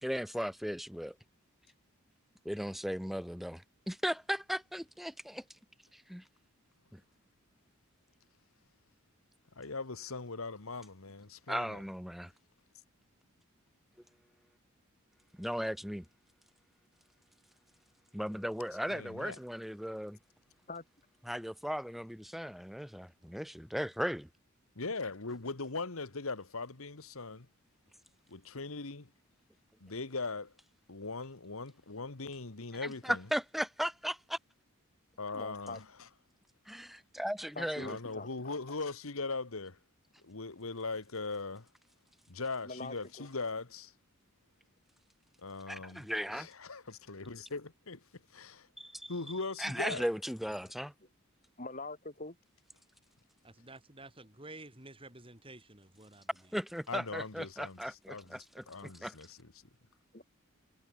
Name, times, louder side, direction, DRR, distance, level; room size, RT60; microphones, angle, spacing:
voice 1, 0.0-1.1 2.4-5.4 5.9-6.2 6.9-7.0 11.5-12.3 15.4-16.0 18.1-20.2 21.2-24.3 32.8-34.4 36.7-38.0 45.7-46.5 48.8-49.1 49.6-50.9 56.5-59.1, equal, ahead, 1.7 m, -37 dB
voice 2, 9.6-11.8 18.9-19.4 24.7-27.5 28.3-29.1 29.8-30.5 30.9-33.2 35.2-36.1 37.8-39.8 40.2-41.7 42.3-43.9 45.4-46.1 46.3-48.0 48.3-48.7 49.1-50.0 56.9-59.5, left 3 dB, 75° left, 1.6 m, -40 dB
voice 3, 35.3-35.8 37.6-38.8 42.6-43.3 51.6-52.4 60.1-60.2, left 3 dB, 35° left, 4.7 m, -44 dB
voice 4, 53.4-56.3, right 2 dB, 25° right, 4.6 m, -51 dB
head